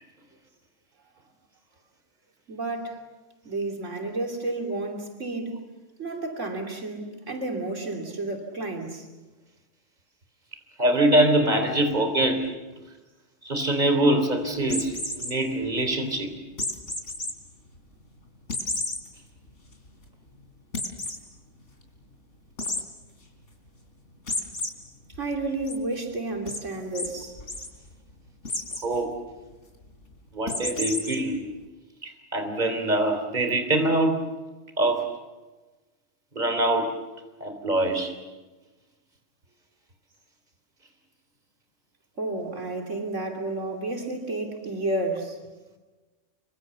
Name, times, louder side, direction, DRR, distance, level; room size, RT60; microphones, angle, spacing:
voice 1, 2.5-3.0 3.5-5.6 6.0-9.1 25.2-27.4 42.2-45.4, right 2 dB, 85° right, 3 dB, 3.4 m, -31 dB
voice 2, 10.8-12.5 13.4-16.3 28.8-29.1 30.3-31.4 32.0-34.2 34.8-35.1 36.3-36.9 37.4-38.1, right 1 dB, 35° right, 6 dB, 3.6 m, -24 dB
sound 1, 14.6-15.3 16.6-17.3 17.8-17.9 18.5-19.0 19.5-19.6 19.9-20.0 20.7-21.2 22.6-22.8 24.3-24.7 25.1-25.7 26.5-26.6 27.0-27.1 27.4-27.7 28.5-28.9 30.5-31.2, left 2 dB, 85° left, 3.8 m, -30 dB
26.5 x 24.5 x 7.1 m, 1.2 s
omnidirectional pair, 1.2 m